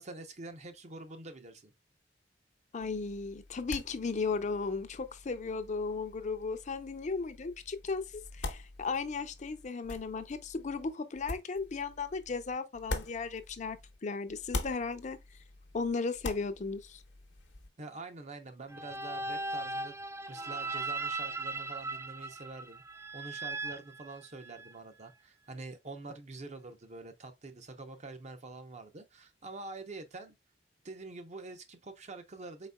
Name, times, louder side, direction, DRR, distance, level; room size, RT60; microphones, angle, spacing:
voice 1, 0.0-1.7 17.8-20.0 20.3-22.8 23.1-30.3 30.8-32.7, right 3 dB, 40° right, 0.7 m, -46 dB
voice 2, 2.7-13.8 14.0-15.2 15.7-17.0, left 4 dB, 40° left, 0.5 m, -35 dB
sound 1, 2.8-14.0 14.3-17.7, left 2 dB, 75° left, 0.9 m, -44 dB
sound 2, 18.7-24.7, right 2 dB, 15° right, 0.3 m, -38 dB
4.3 x 4.0 x 2.2 m
head